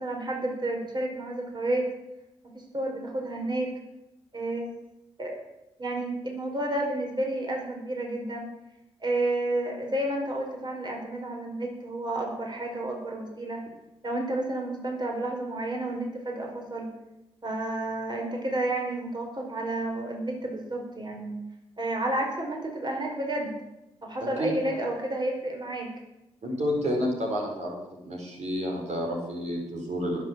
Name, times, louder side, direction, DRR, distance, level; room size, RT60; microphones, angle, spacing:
voice 1, 0.0-1.9 2.5-3.7 4.3-4.7 5.2-5.3 5.8-8.4 9.0-13.6 14.0-16.9 17.4-21.3 21.8-23.5 24.0-26.0, right 1 dB, 35° right, 1 dB, 4.9 m, -31 dB
voice 2, 26.4-27.8 28.0-30.2, equal, 60° right, 0 dB, 4.9 m, -29 dB
19.5 x 7.6 x 7.6 m, 0.95 s
supercardioid pair, 45°, 13 cm